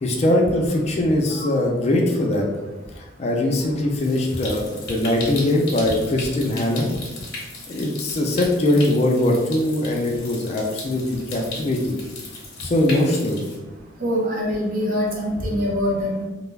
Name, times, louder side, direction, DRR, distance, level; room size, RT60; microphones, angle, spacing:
voice 1, 0.0-2.5 3.2-6.9 7.7-12.0 12.6-13.4, left 1 dB, 35° left, 0 dB, 0.3 m, -21 dB
Stream, 4.0-13.6, left 2 dB, 55° left, 0.7 m, -37 dB
voice 2, 14.0-16.3, equal, 45° right, -2 dB, 0.6 m, -24 dB
2.2 x 2.1 x 3.2 m, 1.1 s
head